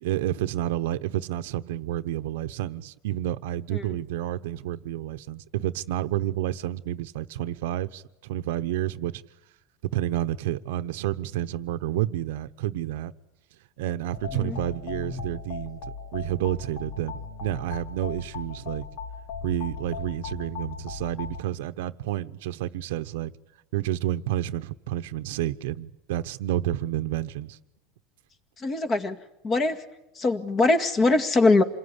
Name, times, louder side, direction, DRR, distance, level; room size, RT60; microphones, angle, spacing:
voice 1, 0.0-9.2 9.9-13.1 13.8-18.9 19.4-23.3 23.7-27.6, right 13 dB, 90° right, 1.0 m, -30 dB
sound 1, 14.1-21.4, left 5 dB, 70° left, 2.2 m, -37 dB
voice 2, 28.6-29.2 29.4-29.8 30.2-31.6, left 3 dB, 25° left, 2.0 m, -22 dB
27.5 x 21.0 x 9.9 m
supercardioid pair, 145°, 0 cm